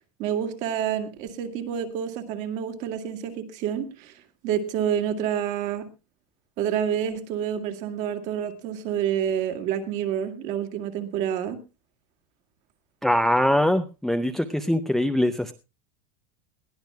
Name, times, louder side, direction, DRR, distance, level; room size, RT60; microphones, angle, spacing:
voice 1, 0.2-5.8 6.6-11.6, right 9 dB, 40° right, 8 dB, 2.1 m, -28 dB
voice 2, 13.0-15.5, left 1 dB, ahead, 8 dB, 0.6 m, -22 dB
21.0 x 14.0 x 2.3 m, 0.29 s
supercardioid pair, 165°, 19 cm